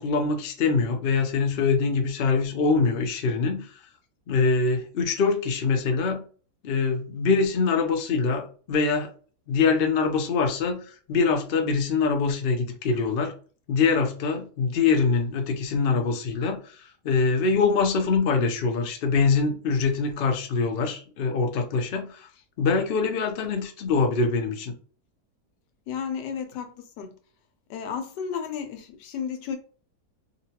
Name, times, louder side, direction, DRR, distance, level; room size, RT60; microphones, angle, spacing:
voice 1, 0.0-3.8 4.3-6.2 6.6-9.1 9.5-13.3 13.7-22.3 22.6-24.8, left 4 dB, 65° left, 0.5 m, -24 dB
voice 2, 25.9-27.1 27.7-29.6, left 7 dB, 85° left, 1.3 m, -33 dB
3.8 x 2.2 x 2.8 m
omnidirectional pair, 1.8 m